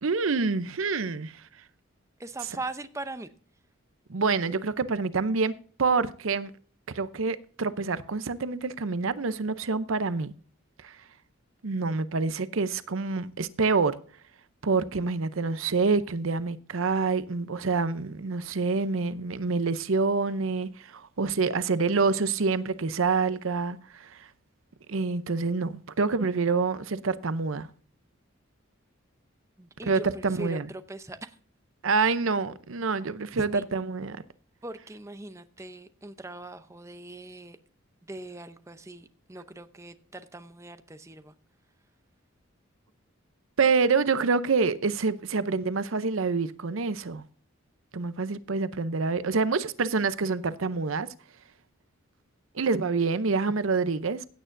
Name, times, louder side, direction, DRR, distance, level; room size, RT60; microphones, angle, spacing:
voice 1, 0.0-1.4 4.1-5.5 5.8-6.5 6.9-10.3 10.8-11.0 11.6-14.0 14.6-24.3 24.9-27.7 29.8-30.7 31.8-34.2 43.6-47.2 47.9-51.1 52.5-54.3, right 4 dB, 75° right, 0.7 m, -27 dB
voice 2, 2.2-3.3 29.6-31.4 33.5-33.6 34.6-37.6 38.1-41.3, right 2 dB, 15° right, 0.7 m, -41 dB
16.5 x 8.9 x 2.6 m
head